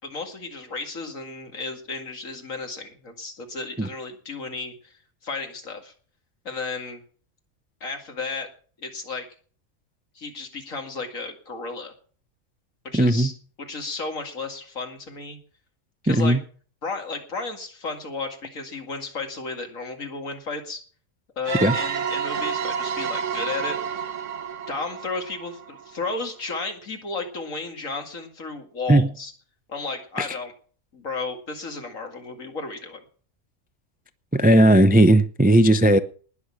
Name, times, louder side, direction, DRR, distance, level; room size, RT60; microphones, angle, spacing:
voice 1, 0.0-4.9 5.2-5.9 6.4-7.0 7.8-8.5 8.8-9.3 10.1-11.9 12.8-13.3 13.6-15.4 16.0-16.4 16.8-20.8 21.4-24.0 24.7-29.3 29.7-30.5 30.9-33.0, left 3 dB, 80° left, 5 dB, 2.6 m, -33 dB
voice 2, 12.9-13.3 16.1-16.4 21.6-21.7 28.9-29.1 30.2-30.3 34.3-36.0, right 1 dB, 15° right, 12 dB, 0.3 m, -16 dB
sound 1, 21.4-26.0, right 7 dB, 70° right, 1.2 m, -30 dB
19.5 x 6.6 x 7.2 m, 0.43 s
omnidirectional pair, 1.4 m